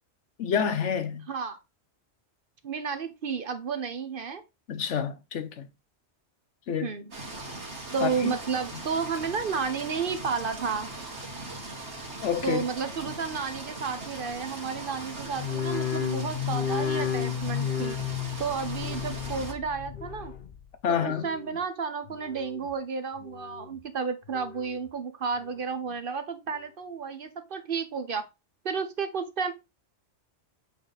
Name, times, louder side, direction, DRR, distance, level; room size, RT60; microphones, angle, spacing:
voice 1, 0.4-1.3 4.7-5.7 6.7-6.9 8.0-8.3 12.2-12.6 20.8-21.3, left 7 dB, 90° left, 1.2 m, -28 dB
voice 2, 1.3-1.6 2.6-4.4 6.8-7.1 7.9-10.9 12.4-18.0 18.4-20.3 20.9-28.3 28.6-29.5, right 5 dB, 55° right, 1.0 m, -32 dB
sound 1, 7.1-19.5, right 2 dB, 75° right, 2.3 m, -40 dB
sound 2, 15.3-20.7 21.0-21.6 22.1-22.7 23.2-23.8 24.2-24.9 25.4-25.9 26.5-26.6, left 8 dB, 50° left, 1.0 m, -33 dB
8.4 x 3.6 x 4.0 m
omnidirectional pair, 1.2 m